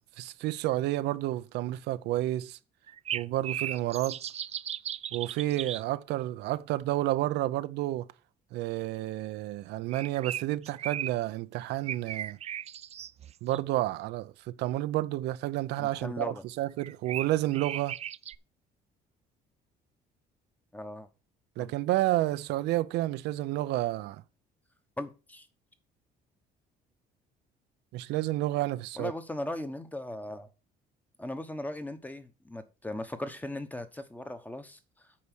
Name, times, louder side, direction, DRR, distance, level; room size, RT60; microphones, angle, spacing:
voice 1, 0.2-2.6 3.1-4.2 5.1-8.1 8.5-12.4 13.4-18.0 21.6-24.2 27.9-29.1, right 15 dB, 85° right, 0.6 m, -30 dB
sound 1, 2.9-5.8 9.9-11.1 11.9-13.6 16.8-18.4, right 10 dB, 40° right, 0.4 m, -36 dB
voice 2, 15.8-16.4 20.7-21.1 21.6-21.7 25.0-25.5 29.0-30.5 31.2-34.8, left 1 dB, 10° left, 1.1 m, -38 dB
8.7 x 4.7 x 6.1 m
cardioid pair, 110°, 17 cm